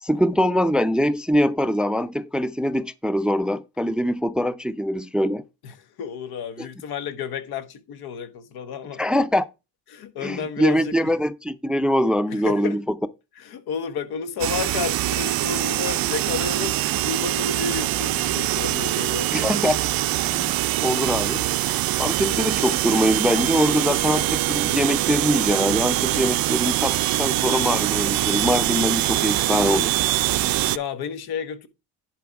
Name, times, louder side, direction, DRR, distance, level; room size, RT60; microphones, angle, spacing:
voice 1, 0.0-5.4 9.0-9.5 10.2-12.8 19.3-19.8 20.2-20.5 20.8-21.5 22.0-29.9, equal, 5° right, 0.4 m, -23 dB
voice 2, 5.6-9.0 9.9-11.1 12.3-12.8 13.3-19.3 21.0-21.1 30.7-31.7, left 6 dB, 85° left, 1.3 m, -31 dB
sound 1, 14.4-30.8, right 15 dB, 70° right, 0.5 m, -23 dB
10.5 x 4.4 x 4.7 m
cardioid pair, 105°, 37 cm